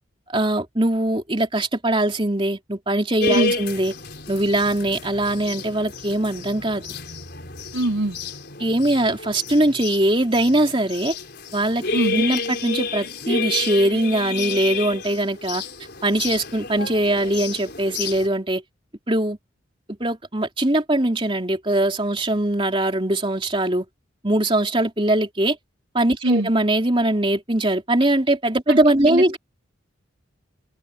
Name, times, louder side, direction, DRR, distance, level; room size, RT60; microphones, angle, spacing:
voice 1, 0.3-3.9 4.3-6.8 8.6-11.1 11.5-11.8 12.1-15.6 16.0-18.6 19.1-19.4 20.0-23.8 24.2-25.6 25.9-29.4, right 1 dB, 25° right, 3.3 m, -21 dB
sound 1, 3.2-18.3, left 4 dB, 50° left, 5.0 m, -30 dB
voice 2, 7.7-8.2 11.9-12.2 26.2-26.5 28.7-28.8 29.1-29.4, right 1 dB, 80° right, 4.7 m, -22 dB
open air
head